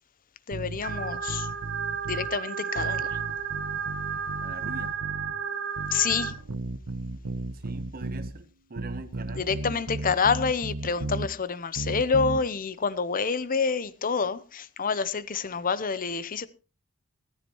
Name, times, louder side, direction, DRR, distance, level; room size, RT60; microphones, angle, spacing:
voice 1, 0.5-1.5 2.1-3.2 5.9-6.4 9.4-16.5, left 5 dB, 40° left, 0.8 m, -27 dB
sound 1, 0.5-2.3 2.8-5.4 5.8-8.3 8.8-11.3 11.8-12.4, right 2 dB, 80° right, 0.9 m, -35 dB
sound 2, 0.8-6.3, right 7 dB, 60° right, 1.8 m, -32 dB
voice 2, 4.4-4.9 7.5-9.8, right 2 dB, 40° right, 1.0 m, -43 dB
17.0 x 14.5 x 3.1 m
head